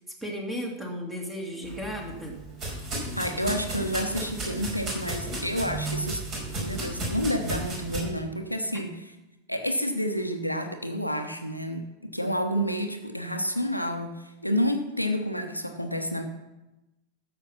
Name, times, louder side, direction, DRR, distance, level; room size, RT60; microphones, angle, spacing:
voice 1, 0.2-2.4, equal, 10° right, 0 dB, 2.4 m, -34 dB
sound 1, 1.6-8.0, right 2 dB, 35° right, 4.9 m, -34 dB
voice 2, 3.1-6.2 6.6-8.9 9.5-16.2, equal, 90° left, 5 dB, 1.0 m, -29 dB
13.5 x 7.0 x 5.5 m, 0.98 s
figure-of-eight pair, 90°, 0 cm